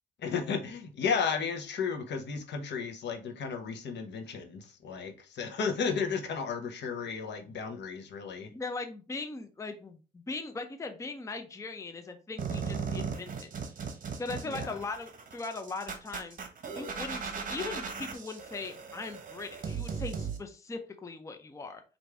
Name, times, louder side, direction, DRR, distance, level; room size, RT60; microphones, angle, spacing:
voice 1, 0.2-8.5 14.4-14.8, left 6 dB, 60° left, 0.8 m, -33 dB
voice 2, 8.5-13.5 14.2-16.4 16.7-21.8, left 3 dB, 15° left, 0.5 m, -39 dB
sound 1, 12.4-20.4, right 5 dB, 45° right, 0.9 m, -37 dB
4.6 x 2.6 x 3.3 m
cardioid pair, 90°, 20 cm